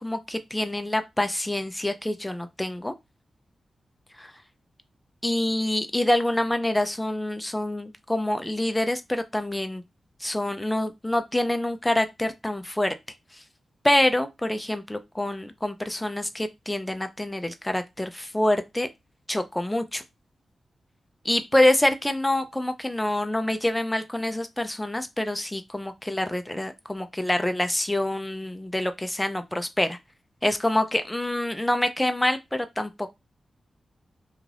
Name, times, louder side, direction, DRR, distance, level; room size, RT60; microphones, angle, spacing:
voice 1, 0.0-2.9 4.2-4.3 5.2-9.8 10.2-12.9 13.3-13.4 13.8-18.9 19.3-20.0 21.2-30.0 30.4-33.1, left 1 dB, 10° left, 0.4 m, -26 dB
2.5 x 2.4 x 3.2 m
cardioid pair, 70°, 0 cm